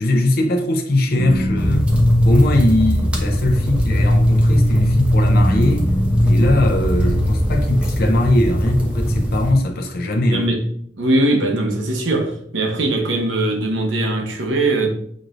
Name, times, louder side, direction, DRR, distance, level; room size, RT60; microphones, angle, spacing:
voice 1, 0.0-1.9 2.2-5.9 6.2-10.5, left 1 dB, 50° left, 0.5 m, -20 dB
sound 1, 1.1-7.3, equal, 85° left, 0.7 m, -18 dB
sound 2, 1.6-9.5, equal, 5° right, 0.6 m, -22 dB
voice 2, 10.3-10.6 11.0-14.9, right 2 dB, 85° right, 0.9 m, -20 dB
6.1 x 3.0 x 2.5 m
head